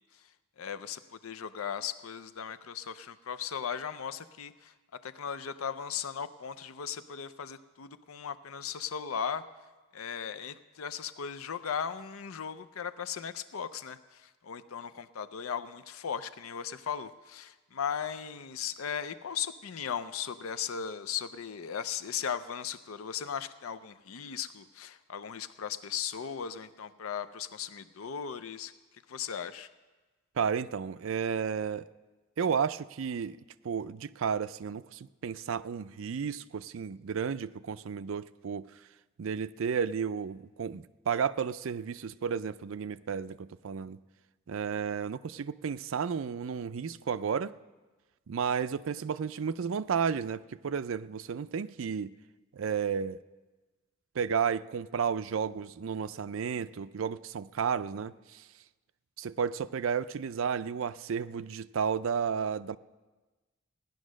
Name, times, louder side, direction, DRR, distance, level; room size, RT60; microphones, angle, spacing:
voice 1, 0.6-9.4 9.9-28.7 29.1-29.7, left 7 dB, 80° left, 0.5 m, -37 dB
voice 2, 30.4-31.9 32.4-33.4 33.6-38.7 39.2-44.0 44.5-47.5 48.3-52.1 52.5-53.2 54.2-58.4 59.2-62.8, right 6 dB, 70° right, 0.4 m, -32 dB
16.5 x 10.5 x 6.3 m
head